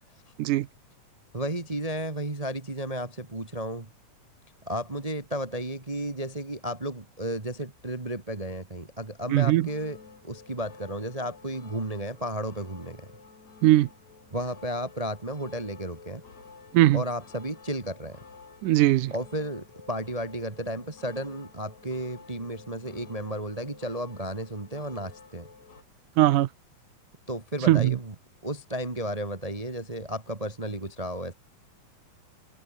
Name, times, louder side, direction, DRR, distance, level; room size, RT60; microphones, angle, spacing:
voice 1, 1.3-3.9 4.7-10.0 10.2-13.1 14.3-16.2 16.9-18.2 19.1-25.5 27.3-28.1 28.4-31.3, right 1 dB, 25° right, 0.7 m, -33 dB
voice 2, 9.3-9.7 13.6-13.9 16.7-17.0 18.6-19.1 26.2-26.5 27.7-28.0, right 15 dB, 85° right, 2.4 m, -20 dB
sound 1, 9.6-25.8, left 5 dB, 60° left, 5.5 m, -51 dB
omnidirectional pair, 3.6 m